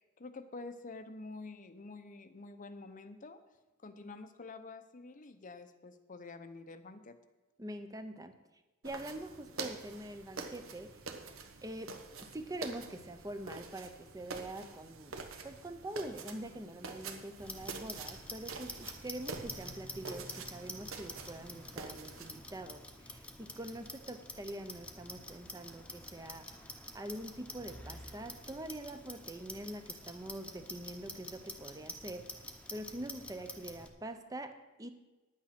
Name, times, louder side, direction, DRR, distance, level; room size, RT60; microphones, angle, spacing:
voice 1, 0.2-3.4 3.8-7.2, left 3 dB, 40° left, 10 dB, 0.7 m, -48 dB
voice 2, 7.6-8.3 8.8-10.9 11.6-11.9 12.3-15.2 15.4-26.5 26.9-32.2 32.7-34.9, right 1 dB, 15° right, 8 dB, 0.7 m, -44 dB
sound 1, 8.8-22.4, right 4 dB, 80° right, 1.2 m, -47 dB
Clock, 17.4-33.9, left 1 dB, 5° left, 1.0 m, -48 dB
10.0 x 8.8 x 5.9 m, 1.1 s
head